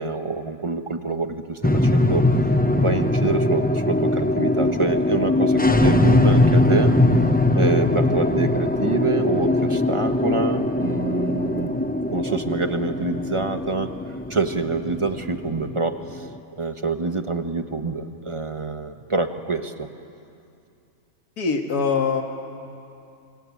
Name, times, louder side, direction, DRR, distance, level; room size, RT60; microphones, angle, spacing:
voice 1, 0.0-2.2 2.7-7.0 7.5-11.7 12.1-13.9 14.3-16.3 16.6-19.9, right 3 dB, 20° right, 7 dB, 1.1 m, -26 dB
sound 1, 1.6-16.3, left 1 dB, 15° left, 0.3 m, -21 dB
voice 2, 21.4-22.2, left 5 dB, 75° left, 3 dB, 2.3 m, -22 dB
27.0 x 24.5 x 8.6 m, 2.6 s
omnidirectional pair, 1.7 m